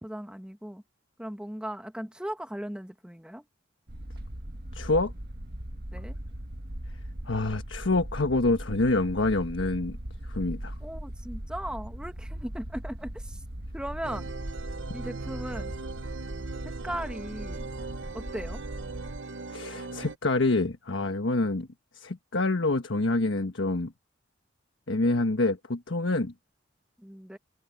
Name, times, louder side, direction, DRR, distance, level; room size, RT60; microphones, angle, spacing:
voice 1, 0.0-0.8 1.2-3.4 5.9-6.2 10.8-13.4 13.7-14.3 14.9-15.7 16.8-17.7 18.1-18.6 27.0-27.4, equal, 5° right, 1.4 m, -37 dB
sound 1, 3.9-19.2, right 1 dB, 55° right, 1.8 m, -39 dB
voice 2, 4.7-5.1 7.3-10.0 10.3-10.7 19.5-21.7 21.9-23.9 24.9-26.3, left 2 dB, 80° left, 1.3 m, -26 dB
sound 2, 14.0-20.1, right 4 dB, 80° right, 0.9 m, -39 dB
head